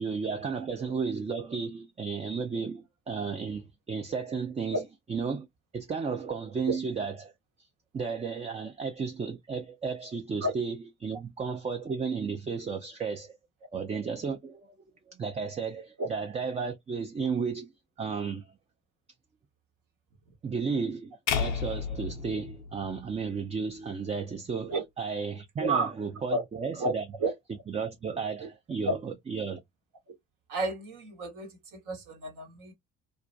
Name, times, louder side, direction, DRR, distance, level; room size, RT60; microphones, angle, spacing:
voice 1, 0.0-4.8 5.1-5.5 5.7-7.3 7.9-13.4 13.7-14.7 15.1-17.7 18.0-18.4 20.4-27.0 27.7-29.6, right 5 dB, 20° right, 0.4 m, -33 dB
sound 1, 21.3-23.5, left 7 dB, 75° left, 0.5 m, -32 dB
voice 2, 25.6-25.9 26.3-26.4 26.8-26.9 27.2-27.3 28.8-29.0 30.5-32.7, right 2 dB, 60° right, 1.0 m, -30 dB
2.3 x 2.1 x 2.5 m
figure-of-eight pair, 45°, 36 cm